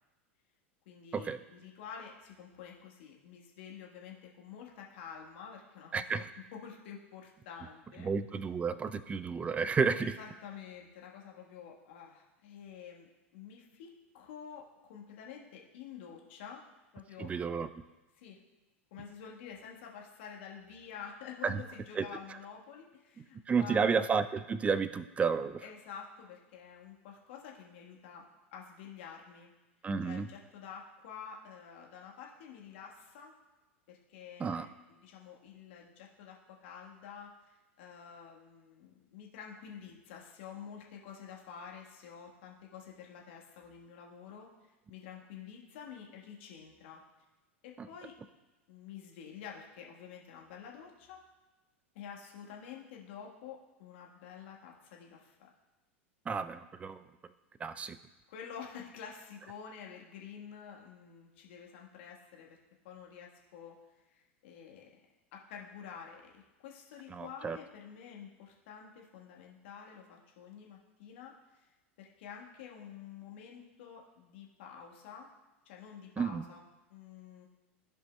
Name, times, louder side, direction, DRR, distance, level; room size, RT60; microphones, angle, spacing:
voice 1, 0.8-6.3 6.5-8.1 10.0-16.6 16.9-17.3 18.2-18.4 18.9-23.9 25.6-28.2 28.5-29.5 30.0-33.3 33.9-37.5 37.8-44.5 44.9-47.0 47.6-48.2 48.7-51.2 51.9-55.3 58.3-62.6 62.8-63.8 64.1-64.9 65.3-71.7 72.0-75.3 75.6-77.5, left 7 dB, 60° left, -1 dB, 1.4 m, -49 dB
voice 2, 5.9-6.3 8.0-10.1 17.2-17.7 21.4-21.6 22.0-22.1 23.5-25.6 29.8-30.3 34.4-34.7 56.3-57.0 57.6-58.0 67.1-67.6 76.2-76.4, right 5 dB, 20° right, 13 dB, 0.4 m, -31 dB
14.5 x 5.2 x 2.2 m, 1.1 s
figure-of-eight pair, 90°, 7 cm